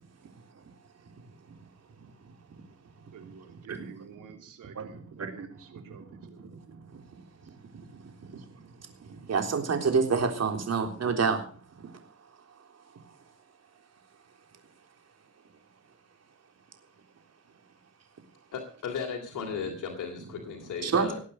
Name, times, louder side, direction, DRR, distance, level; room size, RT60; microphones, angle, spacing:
voice 1, 3.1-6.2, right 7 dB, 90° right, 5 dB, 3.2 m, -50 dB
voice 2, 4.6-5.5 5.9-7.0 7.4-7.9 8.2-8.4 9.0-11.4 11.8-11.9 20.8-21.1, right 5 dB, 55° right, 5 dB, 3.7 m, -29 dB
voice 3, 18.5-21.2, left 6 dB, 75° left, 1 dB, 3.1 m, -36 dB
19.5 x 8.4 x 6.4 m, 0.43 s
cardioid pair, 90°, 31 cm